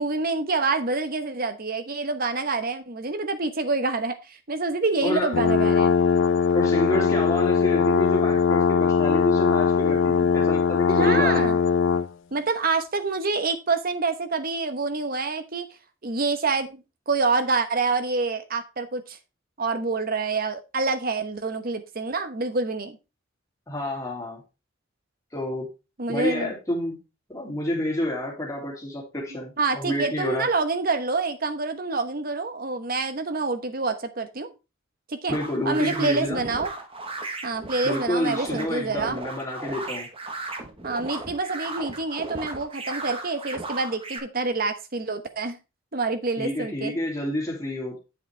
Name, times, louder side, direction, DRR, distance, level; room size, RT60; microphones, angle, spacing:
voice 1, 0.0-5.9 10.9-11.6 12.3-15.7 16.0-19.2 19.6-23.0 26.0-26.5 29.6-34.5 35.1-35.4 35.6-36.7 37.4-39.2 40.8-45.6 45.9-46.9, right 3 dB, 50° right, 1.1 m, -27 dB
voice 2, 5.0-5.4 6.5-11.5 23.7-24.4 25.3-25.7 26.1-26.9 27.3-30.5 35.3-36.4 37.8-40.1 46.4-48.0, left 1 dB, 15° left, 3.0 m, -28 dB
sound 1, 5.3-12.1, left 5 dB, 70° left, 0.4 m, -21 dB
sound 2, 35.3-44.2, right 3 dB, 30° right, 1.3 m, -36 dB
8.3 x 7.3 x 3.4 m
head